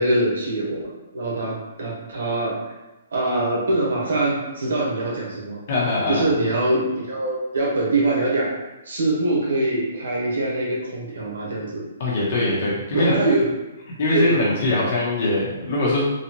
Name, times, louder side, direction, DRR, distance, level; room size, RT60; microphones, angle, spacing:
voice 1, 0.0-2.6 3.1-5.6 6.1-8.6 8.8-11.8 12.9-13.5 14.1-14.4, right 2 dB, 80° right, -4 dB, 1.3 m, -23 dB
voice 2, 5.7-6.2 12.0-13.2 14.0-16.0, left 2 dB, 45° left, -6 dB, 1.0 m, -22 dB
3.9 x 2.4 x 3.0 m, 1.1 s
hypercardioid pair, 170°, 0 cm